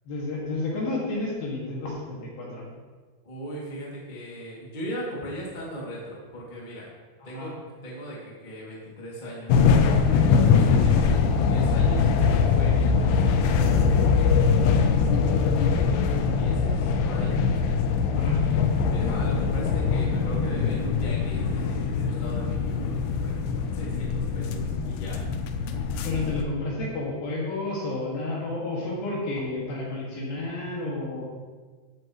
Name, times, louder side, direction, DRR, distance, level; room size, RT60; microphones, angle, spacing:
voice 1, 0.1-2.6 7.2-7.5 12.9-13.4 18.1-18.4 26.0-31.2, left 2 dB, 55° left, -4 dB, 3.6 m, -31 dB
voice 2, 3.2-6.9 7.2-7.5 7.8-15.5 16.3-17.4 18.2-25.2, equal, 30° left, -5 dB, 0.8 m, -38 dB
sound 1, 9.5-26.4, left 5 dB, 85° left, 2.3 m, -22 dB
14.5 x 9.1 x 3.2 m, 1.4 s
omnidirectional pair, 5.6 m